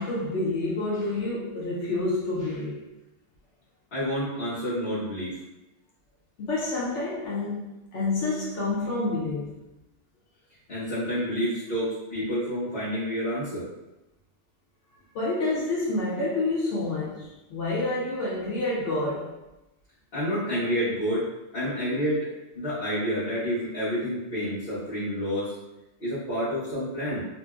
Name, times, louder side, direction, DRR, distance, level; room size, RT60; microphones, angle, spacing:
voice 1, 0.0-2.8 6.4-9.6 15.1-19.3, left 2 dB, 75° left, -6 dB, 1.0 m, -28 dB
voice 2, 3.9-5.3 10.7-13.6 20.1-21.3 21.5-22.3 22.5-25.5 26.0-27.2, equal, 50° left, -13 dB, 1.2 m, -29 dB
2.9 x 2.6 x 2.3 m, 0.97 s
omnidirectional pair, 1.3 m